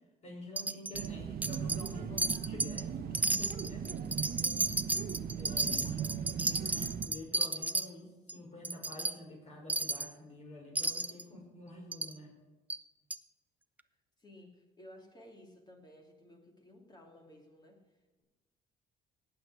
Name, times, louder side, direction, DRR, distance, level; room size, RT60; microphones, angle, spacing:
voice 1, 0.2-4.3 5.4-6.0 6.4-12.3, left 1 dB, 40° left, 0 dB, 5.8 m, -49 dB
Wind chime, 0.6-1.1 1.4-1.9 2.2-2.8 3.1-7.9 8.3-8.4 8.6-9.1 9.7-10.1 10.8-11.2 11.9-12.1 12.7-12.8 13.1-13.2, right 2 dB, 10° right, 0.5 m, -33 dB
sound 1, 0.9-7.1, right 8 dB, 65° right, 1.2 m, -38 dB
voice 2, 14.2-18.2, left 1 dB, 25° left, 1 dB, 2.7 m, -56 dB
17.5 x 8.7 x 4.9 m, 1.1 s
cardioid pair, 110°, 17 cm